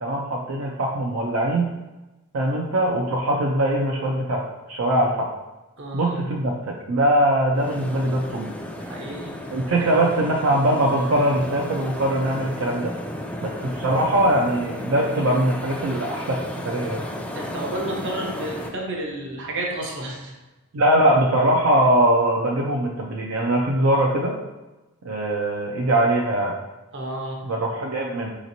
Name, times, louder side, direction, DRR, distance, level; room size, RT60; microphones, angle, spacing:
voice 1, 0.0-1.7 2.3-4.4 4.7-5.3 5.9-8.5 9.5-12.9 13.4-16.4 16.6-17.0 20.7-24.3 25.0-26.5 27.4-28.3, right 1 dB, 80° right, -2 dB, 0.5 m, -21 dB
voice 2, 5.8-6.2 8.8-9.4 17.3-20.3 26.9-27.5, right 1 dB, 60° right, 0 dB, 0.8 m, -31 dB
sound 1, 7.5-18.7, left 1 dB, 5° left, 0.3 m, -34 dB
4.9 x 3.1 x 2.7 m, 1.1 s
head